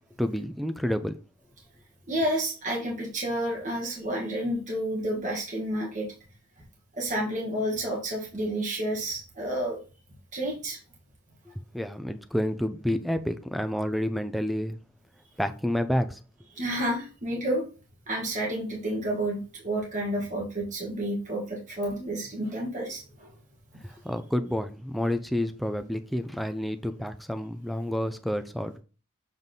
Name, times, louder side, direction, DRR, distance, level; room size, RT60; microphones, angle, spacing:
voice 1, 0.2-1.2 11.5-14.8 15.4-16.2 23.8-28.8, left 1 dB, ahead, 0.5 m, -29 dB
voice 2, 2.1-6.1 7.0-9.8 10.3-10.8 16.5-17.6 18.1-23.3, right 1 dB, 35° right, 1.7 m, -30 dB
7.3 x 3.7 x 3.9 m
head